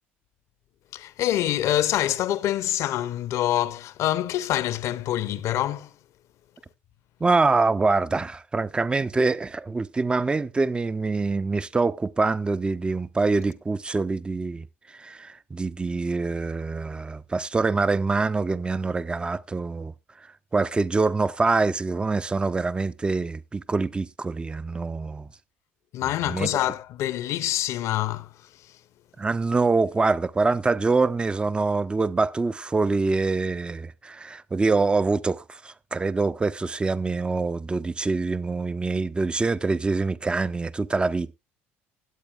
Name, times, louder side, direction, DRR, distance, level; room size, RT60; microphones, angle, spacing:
voice 1, 0.9-5.9 25.9-28.8, left 13 dB, 45° left, 0.8 m, -26 dB
voice 2, 7.2-14.7 15.0-19.9 20.5-25.3 26.3-26.5 29.2-41.3, right 3 dB, 15° right, 0.6 m, -25 dB
20.5 x 8.5 x 2.4 m
figure-of-eight pair, 60°, 7 cm